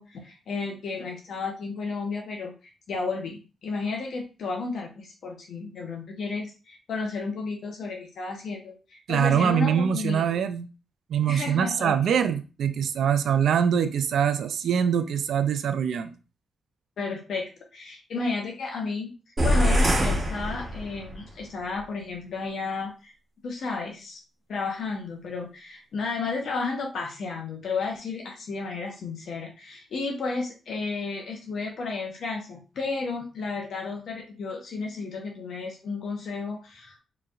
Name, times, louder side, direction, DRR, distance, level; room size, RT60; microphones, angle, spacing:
voice 1, 0.0-2.5 2.9-10.2 11.3-12.0 17.0-19.1 19.4-23.1 23.4-24.2 24.5-37.0, left 4 dB, 70° left, 0.9 m, -32 dB
voice 2, 9.1-10.7 11.1-16.1, right 8 dB, 85° right, 0.4 m, -24 dB
sound 1, 19.4-21.2, equal, 35° right, 1.1 m, -23 dB
4.7 x 3.2 x 2.4 m
wide cardioid pair, 135°, 0 cm